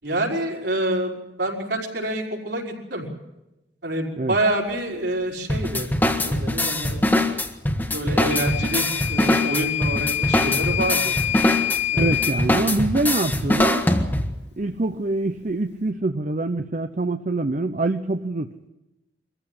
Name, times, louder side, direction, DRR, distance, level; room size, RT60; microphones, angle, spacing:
voice 1, 0.0-3.1 3.8-5.9 6.2-7.0 7.9-11.1 11.9-12.1, right 1 dB, 70° right, 0 dB, 5.0 m, -27 dB
sound 1, 5.5-14.4, left 1 dB, 10° left, 1.4 m, -23 dB
Microwave oven / Alarm, 8.3-12.4, left 12 dB, 75° left, 2.8 m, -26 dB
voice 2, 11.9-13.8 14.6-18.5, right 2 dB, 45° right, 8 dB, 0.7 m, -25 dB
24.0 x 15.0 x 9.9 m, 0.95 s
head